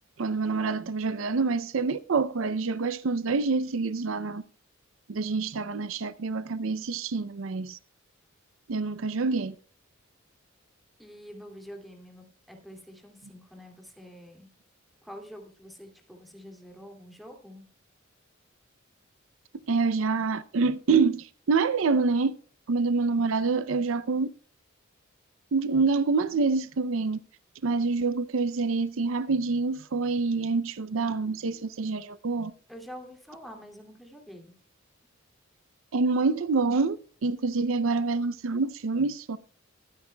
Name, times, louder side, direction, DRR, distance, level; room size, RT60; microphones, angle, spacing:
voice 1, 0.2-4.4 5.1-7.8 8.7-9.6 19.7-22.3 22.7-24.3 25.5-27.2 27.6-32.5 35.9-37.0 37.2-39.4, right 4 dB, 70° right, 0.5 m, -26 dB
voice 2, 11.0-14.5 15.0-17.7 32.7-34.5, equal, ahead, 2.4 m, -46 dB
21.5 x 9.8 x 2.2 m
head